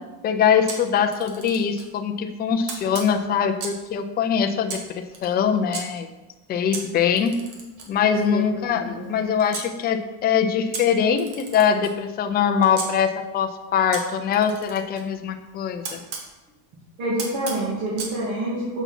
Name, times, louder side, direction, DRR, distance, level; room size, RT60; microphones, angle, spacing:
voice 1, 0.2-4.8 5.2-6.1 6.5-7.4 7.9-16.0, left 7 dB, 20° left, 4 dB, 0.4 m, -22 dB
Camera, 0.7-1.9 2.7-3.9 4.7-5.8 6.7-9.7 10.7-12.9 13.9-16.3 17.2-18.2, right 5 dB, 90° right, 1.7 m, -37 dB
voice 2, 7.9-9.1 17.0-18.8, right 1 dB, 70° right, -6 dB, 2.5 m, -28 dB
6.9 x 5.9 x 4.2 m, 1.1 s
cardioid pair, 155°, 47 cm